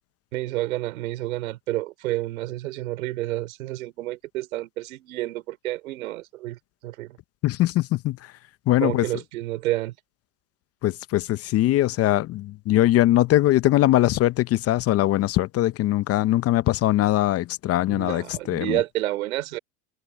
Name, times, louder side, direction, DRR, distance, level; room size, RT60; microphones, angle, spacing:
voice 1, 0.3-6.6 6.8-7.2 8.8-9.9 17.9-19.6, right 16 dB, 75° right, 3.8 m, -29 dB
voice 2, 7.4-8.2 8.7-9.1 10.8-18.8, left 15 dB, 35° left, 0.8 m, -21 dB
hypercardioid pair, 105°, 41 cm